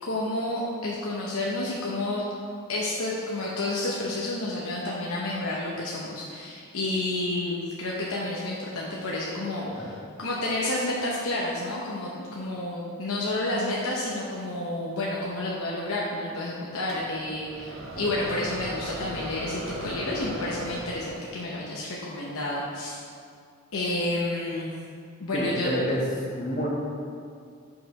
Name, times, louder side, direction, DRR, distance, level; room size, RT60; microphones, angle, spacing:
voice 1, 0.0-2.2 2.7-23.0 23.7-24.7 25.2-25.7, left 2 dB, 75° left, -4 dB, 0.9 m, -30 dB
sound 1, 16.9-21.4, right 1 dB, 60° right, 0.8 m, -37 dB
voice 2, 25.3-26.0 26.4-26.7, equal, 35° left, -4 dB, 1.3 m, -28 dB
5.7 x 4.9 x 5.4 m, 2.3 s
head